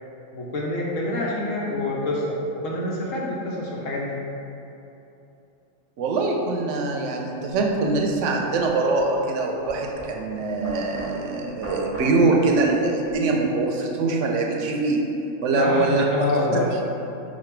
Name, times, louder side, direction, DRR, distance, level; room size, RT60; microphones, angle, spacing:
voice 1, 0.3-4.2 15.5-16.7, left 1 dB, 85° left, -4 dB, 1.2 m, -26 dB
voice 2, 6.0-15.0 15.4-16.0, right 3 dB, 75° right, 1 dB, 0.9 m, -23 dB
sound 1, 7.6-13.2, equal, 60° left, 1.9 m, -39 dB
5.2 x 2.3 x 4.4 m, 2.8 s
omnidirectional pair, 1.3 m